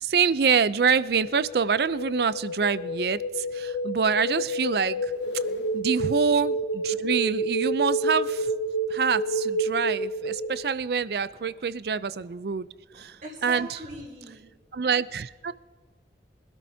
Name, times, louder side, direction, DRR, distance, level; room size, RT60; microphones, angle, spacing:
voice 1, 0.0-5.1 5.7-8.5 8.9-12.7 13.0-13.8 14.7-15.5, right 6 dB, 65° right, 16 dB, 0.5 m, -26 dB
sound 1, 1.0-10.7, right 1 dB, 80° left, 0.6 m, -29 dB
voice 2, 5.2-5.7 11.3-11.5 12.1-12.3 12.9-14.5, right 1 dB, 45° right, -2 dB, 2.8 m, -42 dB
24.0 x 13.0 x 2.8 m, 1.4 s
head